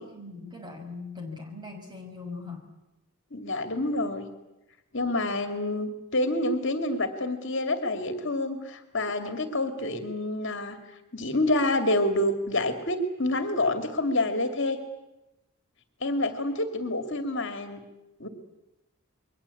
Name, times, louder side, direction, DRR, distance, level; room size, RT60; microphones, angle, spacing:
voice 1, 0.0-2.7, left 3 dB, 20° right, 3 dB, 5.3 m, -40 dB
voice 2, 3.3-4.3 4.9-10.8 11.1-14.8 16.0-17.8 18.2-18.3, left 1 dB, 55° left, 7 dB, 2.6 m, -27 dB
28.5 x 22.5 x 8.5 m, 0.96 s
head